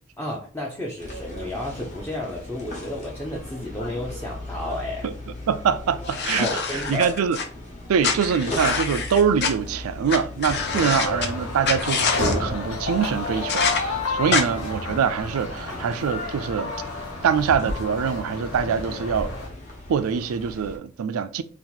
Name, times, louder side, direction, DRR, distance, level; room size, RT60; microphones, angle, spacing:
voice 1, 0.2-5.1 6.4-7.1 10.7-10.9 14.3-14.4, left 1 dB, 10° left, 0.5 m, -32 dB
sound 1, 1.0-20.8, left 1 dB, 35° left, 1.0 m, -39 dB
voice 2, 5.5-7.4 7.9-16.7 17.2-19.3 19.9-21.4, right 7 dB, 90° right, 0.4 m, -24 dB
sound 2, 6.1-7.4 8.0-9.5 10.1-10.2 10.4-11.3 11.6-12.3 13.5-13.8 14.3-14.4, left 5 dB, 55° left, 0.6 m, -25 dB
sound 3, 10.5-19.5, left 2 dB, 85° left, 1.0 m, -30 dB
2.8 x 2.5 x 3.9 m
head